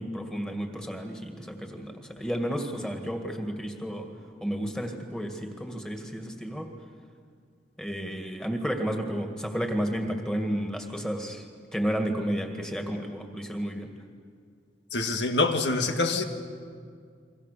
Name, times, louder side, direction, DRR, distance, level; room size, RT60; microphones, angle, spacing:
voice 1, 0.0-4.1 4.4-6.7 7.8-11.5 11.7-13.9, equal, 5° left, 4 dB, 2.1 m, -32 dB
voice 2, 14.9-16.2, left 3 dB, 85° left, 6 dB, 1.8 m, -25 dB
28.5 x 24.0 x 6.9 m, 2.1 s
head